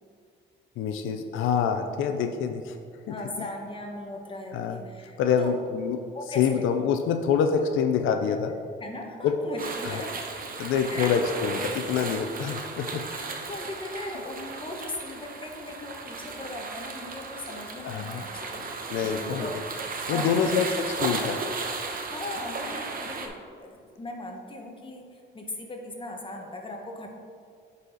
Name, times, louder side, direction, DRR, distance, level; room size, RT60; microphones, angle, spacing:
voice 1, 0.8-2.8 4.5-4.8 5.2-6.0 6.4-8.5 9.2-9.4 9.8-9.9 10.6-13.1 17.8-18.2 18.9-19.5 20.1-21.4, left 7 dB, 85° left, 6 dB, 0.5 m, -26 dB
voice 2, 3.1-5.6 6.1-6.7 8.8-10.3 10.9-11.1 11.9-12.2 13.4-19.6 20.1-20.5 22.1-27.1, left 2 dB, 25° left, 1 dB, 1.2 m, -38 dB
sound 1, 9.6-23.3, right 4 dB, 45° right, 0.9 m, -35 dB
9.5 x 4.1 x 3.9 m, 2.4 s
cardioid pair, 90°, 20 cm